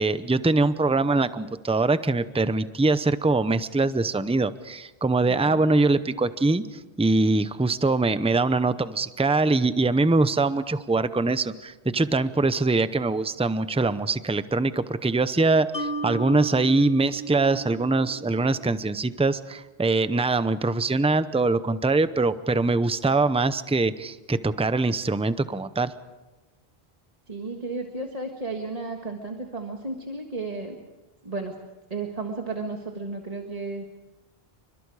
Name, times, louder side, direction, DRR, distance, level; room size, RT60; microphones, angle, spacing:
voice 1, 0.0-25.9, right 3 dB, 5° right, 13 dB, 0.6 m, -23 dB
Mallet percussion, 15.7-19.0, right 3 dB, 70° left, 2.6 m, -35 dB
voice 2, 27.3-30.8 31.2-31.5 31.9-33.8, right 3 dB, 35° right, 2 dB, 1.8 m, -33 dB
29.5 x 24.5 x 4.9 m, 1.1 s
omnidirectional pair, 1.1 m